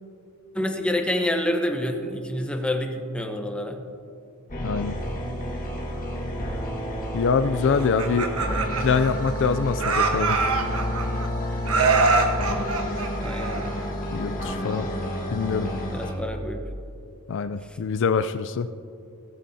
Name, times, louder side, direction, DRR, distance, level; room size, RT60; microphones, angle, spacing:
voice 1, 0.5-3.8 13.1-13.7 15.9-16.6 17.7-17.8, left 1 dB, 5° left, 3 dB, 1.0 m, -27 dB
sound 1, 4.5-16.1, equal, 40° left, 1.6 m, -30 dB
voice 2, 4.6-5.0 7.1-8.3 8.8-10.4 14.1-14.9 15.3-15.7 17.3-18.7, left 5 dB, 55° left, 11 dB, 0.4 m, -24 dB
Laughter, 7.8-9.5 9.8-11.3 11.7-13.9, right 4 dB, 75° right, 1.3 m, -24 dB
17.5 x 14.0 x 2.8 m, 2.6 s
head